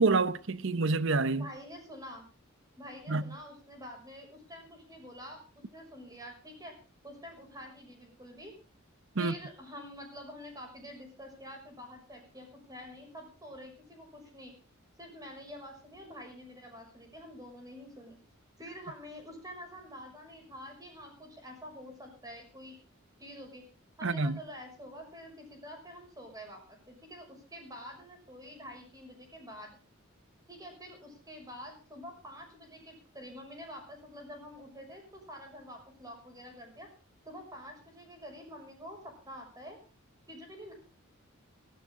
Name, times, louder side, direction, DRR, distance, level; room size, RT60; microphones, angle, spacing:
voice 1, 0.0-1.5 3.1-3.2 9.2-9.3 24.0-24.4, right 3 dB, 60° right, 0.9 m, -27 dB
voice 2, 1.4-2.3 2.8-6.8 7.0-8.5 9.2-14.5 15.0-18.2 18.6-22.8 23.2-23.6 24.0-29.7 30.5-36.9 37.2-39.8 40.3-40.7, equal, 20° right, 6.1 m, -47 dB
18.0 x 15.5 x 3.7 m
head